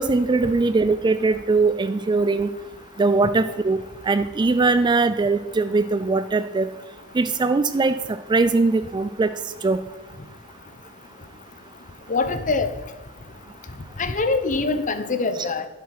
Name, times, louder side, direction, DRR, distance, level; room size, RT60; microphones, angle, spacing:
voice 1, 0.0-2.5 3.0-3.8 4.1-6.7 7.1-8.0 8.3-9.3 9.6-9.8, right 3 dB, 20° right, 12 dB, 0.3 m, -20 dB
voice 2, 12.1-12.7 14.0-15.7, left 3 dB, 35° left, 10 dB, 0.8 m, -23 dB
11.0 x 8.2 x 4.8 m, 1.2 s
head